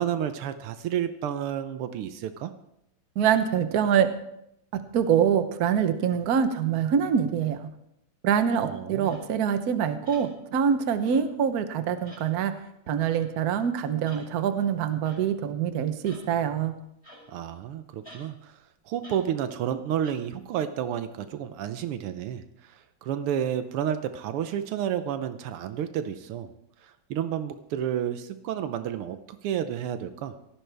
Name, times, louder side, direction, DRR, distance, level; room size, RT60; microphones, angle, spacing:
voice 1, 0.0-2.5 8.6-9.1 17.3-18.5 18.9-26.5 27.1-30.4, right 10 dB, 85° right, 10 dB, 1.7 m, -31 dB
voice 2, 3.2-4.1 4.9-7.7 8.2-12.5 12.9-16.7, right 8 dB, 55° right, 9 dB, 1.2 m, -25 dB
sound 1, 9.0-9.3 10.0-10.3 11.0-11.4 12.0-12.3 13.0-13.3 14.0-14.3 15.0-15.3 16.0-16.3 17.0-17.5 18.0-18.3 19.0-19.3 20.0-20.1, equal, 10° left, 5.0 m, -49 dB
17.5 x 14.5 x 3.4 m, 0.80 s
omnidirectional pair, 2.4 m